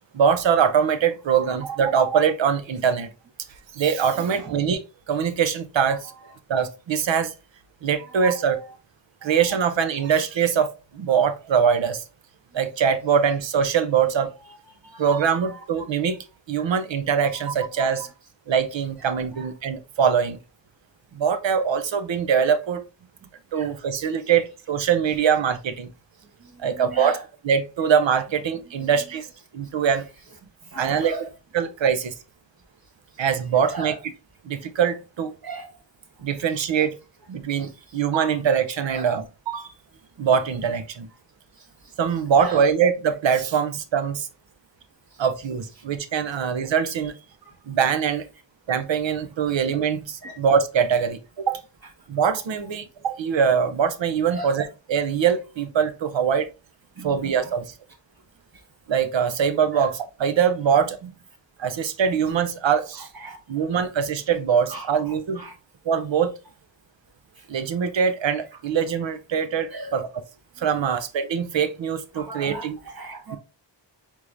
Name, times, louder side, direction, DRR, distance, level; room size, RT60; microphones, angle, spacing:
voice 1, 0.1-3.1 3.7-4.8 5.1-6.1 6.5-7.3 7.8-8.6 9.2-12.0 12.5-14.3 15.0-18.1 18.5-20.4 21.1-22.8 23.5-25.9 26.6-27.2 27.4-29.3 29.5-30.1 30.8-31.1 31.5-32.1 33.2-34.0 34.4-35.3 36.2-37.0 37.3-39.7 40.2-41.1 42.0-44.3 45.2-47.2 47.7-48.2 48.7-51.6 52.1-54.6 54.9-56.5 57.0-57.7 58.9-61.0 61.6-63.1 63.5-65.4 65.9-66.3 67.5-70.1 70.6-72.8 73.3-73.4, right 7 dB, 80° right, 0.7 m, -23 dB
voice 2, 4.1-4.6 6.1-6.2 8.0-8.6 9.2-9.3 14.8-15.2 15.4-15.6 16.6-16.8 17.4-17.6 19.0-19.5 23.5-23.7 26.4-27.2 28.7-29.0 30.6-31.3 33.7-34.0 35.4-35.7 38.8-39.1 41.6-42.0 42.4-42.7 45.1-45.2 47.5-47.6 49.5-49.6 50.2-50.4 54.3-54.6 57.0-57.2 59.7-59.9 61.6-61.7 63.0-63.8 64.6-65.6 67.4-67.5 69.7-69.9 70.6-71.0 72.1-73.4, right 3 dB, 55° right, 1.3 m, -38 dB
4.6 x 3.6 x 2.5 m
cardioid pair, 45°, 44 cm